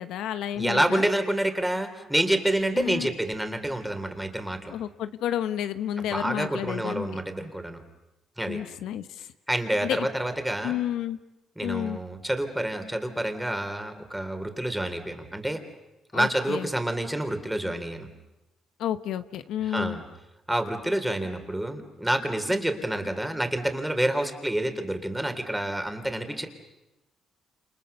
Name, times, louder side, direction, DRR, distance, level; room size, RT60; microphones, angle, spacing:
voice 1, 0.0-1.1 2.8-3.1 4.7-7.1 8.5-9.3 9.8-10.1 10.6-11.2 11.6-12.0 16.1-16.7 18.8-20.0, left 11 dB, 85° left, 11 dB, 1.1 m, -31 dB
voice 2, 0.5-4.7 6.0-7.8 8.4-8.6 9.5-10.8 11.6-15.6 16.1-18.1 19.6-20.0 20.5-26.5, right 1 dB, 5° right, 6 dB, 3.7 m, -28 dB
29.0 x 29.0 x 6.9 m, 0.95 s
cardioid pair, 90°, 0 cm